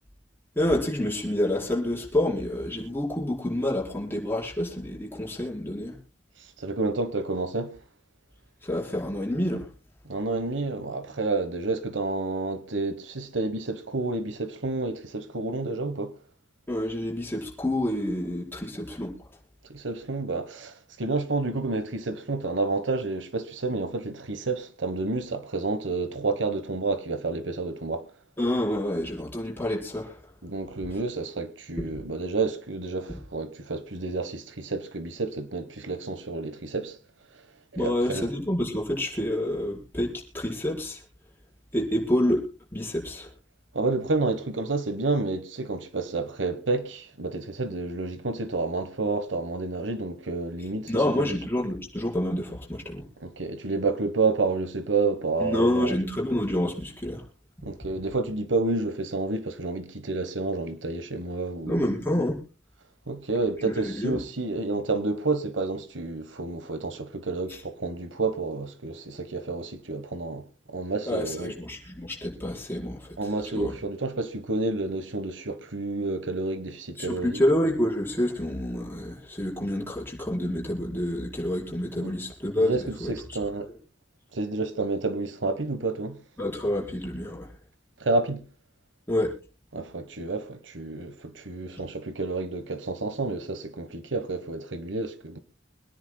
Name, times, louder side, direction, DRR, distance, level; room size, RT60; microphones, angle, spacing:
voice 1, 0.6-6.0 8.6-9.7 16.7-19.2 28.4-30.2 31.8-32.0 37.8-41.0 41.7-42.5 42.7-43.3 50.9-53.1 55.4-57.2 57.6-57.7 61.6-62.4 63.6-64.2 67.5-67.6 71.1-73.7 77.0-83.1 86.4-87.5 89.1-89.3, left 1 dB, 10° left, 5.2 m, -28 dB
voice 2, 6.6-7.8 10.0-16.1 19.7-28.1 30.4-37.0 37.7-38.3 43.7-51.3 53.2-55.9 57.6-61.8 63.1-71.5 73.2-77.4 82.0-82.1 82.6-83.7 84.3-86.2 88.0-88.4 89.7-95.4, right 3 dB, 80° right, 1.3 m, -30 dB
26.0 x 10.5 x 2.3 m
head